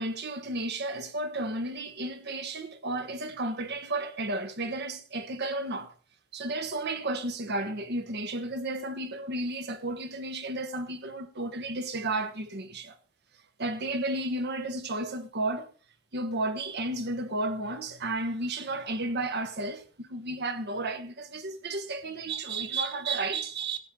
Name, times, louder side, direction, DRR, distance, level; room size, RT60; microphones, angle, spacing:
voice 1, 0.0-5.9 6.3-13.0 13.6-15.7 16.1-23.8, right 2 dB, 50° right, 1.4 m, -33 dB
15.5 x 9.3 x 3.8 m
head